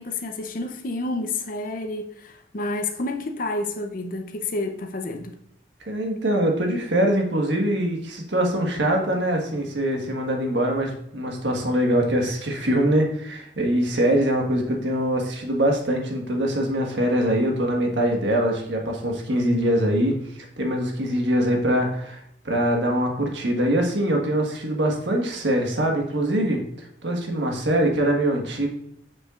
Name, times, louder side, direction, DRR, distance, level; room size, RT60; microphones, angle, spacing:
voice 1, 0.0-5.4, left 2 dB, 50° left, 0.6 m, -29 dB
voice 2, 5.9-20.1 20.6-26.6 27.0-28.7, right 1 dB, 75° right, 1.5 m, -23 dB
7.4 x 6.3 x 2.5 m
head